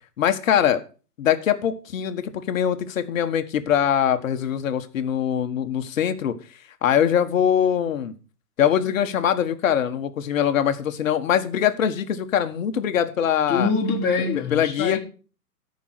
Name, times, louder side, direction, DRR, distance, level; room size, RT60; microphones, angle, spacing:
voice 1, 0.2-0.8 1.2-6.3 6.8-8.1 8.6-13.7 14.3-15.0, left 9 dB, 55° left, 1.6 m, -22 dB
voice 2, 13.5-15.0, left 4 dB, 20° left, 3.7 m, -24 dB
13.5 x 5.5 x 6.4 m
hypercardioid pair, 140°, 47 cm